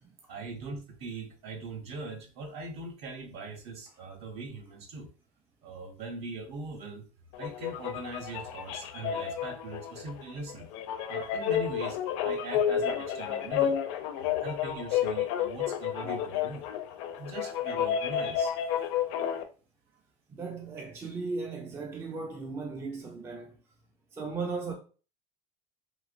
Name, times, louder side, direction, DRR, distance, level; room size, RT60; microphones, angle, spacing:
voice 1, 0.3-5.1 5.6-7.1 7.4-10.7 11.1-13.8 14.1-16.7 17.2-18.5, right 3 dB, 45° right, 0.7 m, -41 dB
sound 1, 7.3-19.4, left 9 dB, 75° left, 0.5 m, -31 dB
voice 2, 20.3-23.6 24.1-24.7, right 4 dB, 15° right, 0.3 m, -36 dB
3.1 x 2.8 x 2.4 m
cardioid pair, 165°, 15 cm